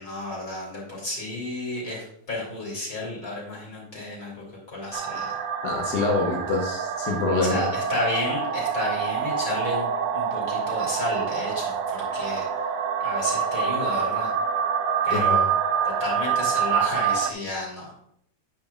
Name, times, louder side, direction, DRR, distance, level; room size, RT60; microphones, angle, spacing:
voice 1, 0.0-5.4 7.3-9.9 10.1-12.5 13.0-14.3 15.0-15.5 15.8-17.9, left 1 dB, 25° left, -2 dB, 3.6 m, -32 dB
sound 1, 4.9-17.3, right 7 dB, 80° right, 2.1 m, -26 dB
voice 2, 5.6-7.7 15.1-15.4, left 3 dB, 65° left, 0 dB, 1.0 m, -25 dB
9.4 x 9.1 x 2.4 m, 0.69 s
omnidirectional pair, 3.5 m